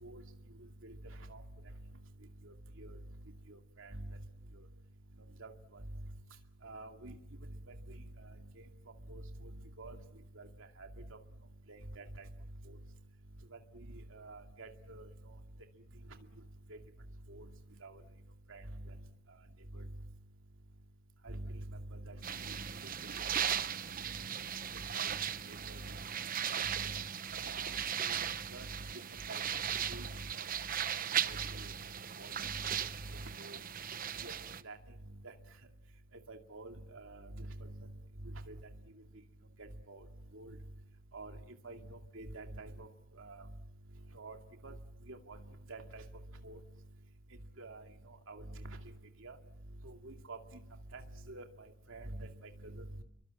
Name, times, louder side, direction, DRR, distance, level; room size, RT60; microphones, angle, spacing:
voice 1, 2.4-3.0 3.5-4.2 5.4-5.8 6.6-7.1 7.7-8.0 9.1-9.5 9.8-10.0 10.4-11.2 11.7-12.3 12.7-12.8 13.5-13.6 14.1-15.1 16.7-16.8 17.3-17.5 17.8-18.0 18.5-19.0 19.7-19.9 21.2-22.2 22.5-22.6 23.6-23.7 24.7-25.2 25.5-25.8 26.2-27.0 27.3-27.7 28.0-28.2 28.5-28.7 29.3-29.4 29.9-30.1 31.2-31.7 32.2-32.8 33.4-33.6 34.2-34.3 34.6-34.8 35.2-35.3 36.3-37.9 38.2-38.6 39.6-40.0 40.3-40.6 41.1-41.3 41.6-42.9 43.2-43.5 44.1-44.4 44.6-44.7 45.1-45.4 45.7-46.0 46.4-46.6 47.6-48.8 49.2-49.4 49.8-50.4 50.9-51.0 51.3-53.0, right 2 dB, 80° right, 4 dB, 2.4 m, -47 dB
sound 1, 22.2-34.6, right 9 dB, 45° right, 0.9 m, -37 dB
30.0 x 23.5 x 7.6 m, 0.78 s
head